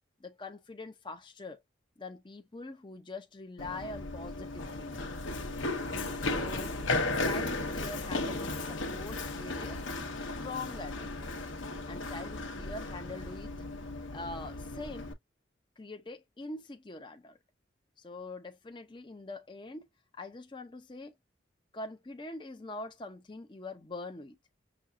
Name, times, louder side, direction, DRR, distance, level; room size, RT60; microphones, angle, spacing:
voice 1, 0.2-1.6 2.0-5.1 6.2-6.8 7.2-9.8 10.2-11.1 11.9-13.7 14.1-15.1 15.8-17.4 18.0-19.9 20.1-21.2 21.7-24.4, left 2 dB, 25° left, 0.6 m, -43 dB
Run, 3.6-15.1, left 2 dB, 80° left, 1.0 m, -35 dB
6.1 x 2.3 x 2.5 m
head